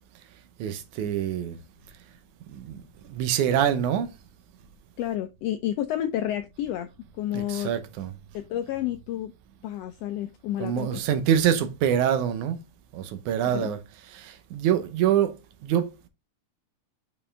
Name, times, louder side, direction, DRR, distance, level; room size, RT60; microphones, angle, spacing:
voice 1, 0.6-1.6 2.5-2.8 3.1-4.1 7.3-8.1 10.6-12.6 12.9-13.8 14.1-15.4 15.6-16.1, right 9 dB, 85° right, 2.4 m, -25 dB
voice 2, 5.0-6.9 7.2-7.7 8.3-9.3 9.6-11.0 13.4-13.7, left 12 dB, 85° left, 1.4 m, -30 dB
6.7 x 5.5 x 3.5 m
omnidirectional pair, 3.4 m